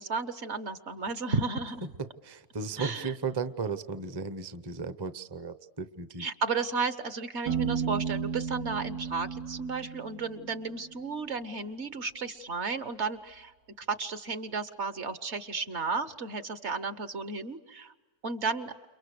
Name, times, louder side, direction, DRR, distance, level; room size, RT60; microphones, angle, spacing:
voice 1, 0.0-1.8 2.8-3.1 6.2-13.5 13.8-17.9 18.2-18.7, right 4 dB, 50° right, 11 dB, 1.4 m, -33 dB
voice 2, 2.0-6.3, right 4 dB, 20° right, 11 dB, 0.8 m, -35 dB
Piano, 7.5-11.2, right 6 dB, 80° right, 2.2 m, -34 dB
30.0 x 29.5 x 6.7 m, 1.2 s
omnidirectional pair, 1.6 m